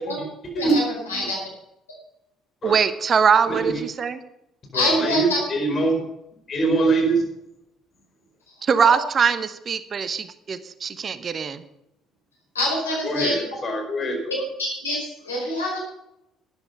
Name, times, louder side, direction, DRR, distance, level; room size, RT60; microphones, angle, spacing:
voice 1, 2.6-4.2 8.6-11.6, right 6 dB, 40° right, 13 dB, 0.9 m, -22 dB
voice 2, 3.5-3.8 4.7-6.0 6.5-7.2 12.9-14.4, right 3 dB, 40° left, 2 dB, 4.9 m, -23 dB
voice 3, 4.7-5.4 12.5-13.4 14.3-14.4 14.8-15.8, left 1 dB, 90° left, -3 dB, 5.2 m, -25 dB
12.5 x 10.5 x 5.6 m, 0.85 s
figure-of-eight pair, 50°, 0 cm